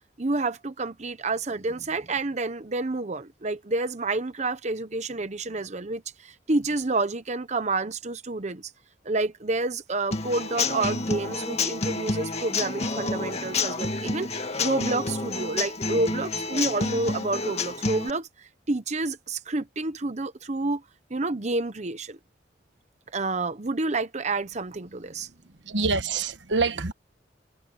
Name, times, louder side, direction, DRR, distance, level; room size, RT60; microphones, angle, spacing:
voice 1, 0.2-8.7 9.0-14.3 14.6-20.8 21.1-22.2 23.1-25.3, right 3 dB, 40° right, 0.9 m, -29 dB
Human voice / Acoustic guitar / Drum, 10.1-18.1, left 3 dB, 35° left, 2.0 m, -29 dB
voice 2, 25.6-26.9, right 4 dB, 85° right, 1.3 m, -26 dB
head